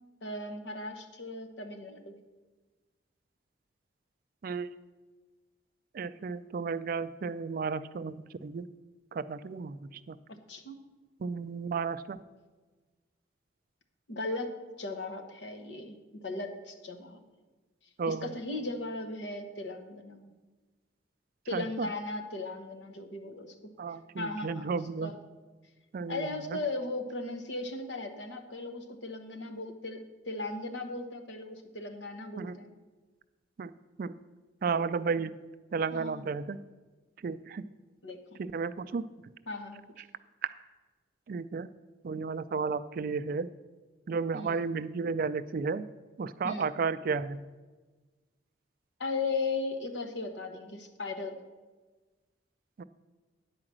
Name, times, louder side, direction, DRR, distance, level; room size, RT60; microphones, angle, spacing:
voice 1, 0.2-2.2 10.5-10.8 14.1-14.5 14.8-17.2 18.1-20.3 21.5-23.5 24.2-25.2 26.1-30.0 30.2-32.7 35.9-36.2 38.0-38.4 39.5-39.8 44.3-44.6 46.4-46.7 49.0-51.4, left 3 dB, 75° left, 6 dB, 1.0 m, -37 dB
voice 2, 5.9-8.7 9.1-10.2 11.2-12.2 18.0-18.3 21.5-21.9 23.8-25.1 25.9-26.6 32.4-32.6 33.6-33.7 34.0-34.1 34.6-35.3 35.7-36.6 37.2-37.6 38.4-39.0 41.3-41.7 42.0-43.5 44.1-45.8 46.2-47.4 52.8-52.9, right 5 dB, 50° right, 14 dB, 0.3 m, -33 dB
9.7 x 4.9 x 7.4 m, 1.3 s
head